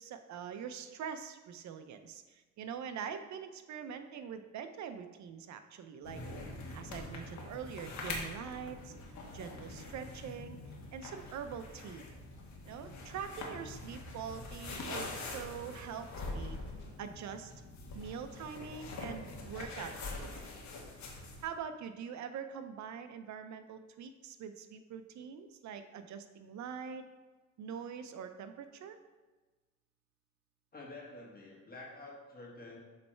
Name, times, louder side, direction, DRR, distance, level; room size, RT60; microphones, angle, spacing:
voice 1, 0.0-6.2 6.7-8.9 9.3-10.6 10.9-12.0 12.7-16.6 17.0-17.5 17.9-20.7 21.4-27.0 27.6-29.0, right 7 dB, 65° right, 9 dB, 0.6 m, -44 dB
sound 1, 6.0-21.4, left 2 dB, 65° left, 1.4 m, -44 dB
voice 2, 30.7-32.8, left 2 dB, 30° left, -3 dB, 1.5 m, -49 dB
7.5 x 3.3 x 4.4 m, 1.3 s
cardioid pair, 90°, 30 cm